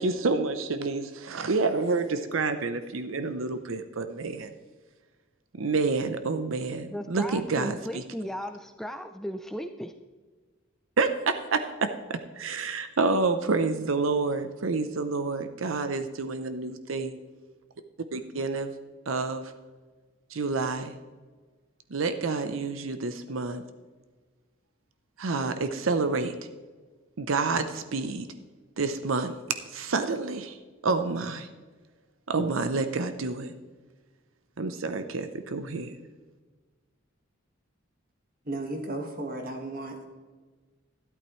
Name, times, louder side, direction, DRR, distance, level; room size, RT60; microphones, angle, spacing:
voice 1, 0.0-4.5 5.6-8.0 11.0-11.6 12.4-17.2 18.1-18.7 19.1-19.5 20.3-21.0 21.9-23.6 25.2-26.3 27.2-28.3 28.8-29.3 29.7-30.6 30.8-31.5 32.3-33.5 34.6-35.9, right 3 dB, 85° right, 9 dB, 0.7 m, -28 dB
voice 2, 6.7-9.9, equal, ahead, 7 dB, 0.4 m, -36 dB
voice 3, 38.4-40.0, right 2 dB, 45° right, 3 dB, 1.6 m, -34 dB
13.0 x 12.0 x 3.1 m, 1.4 s
head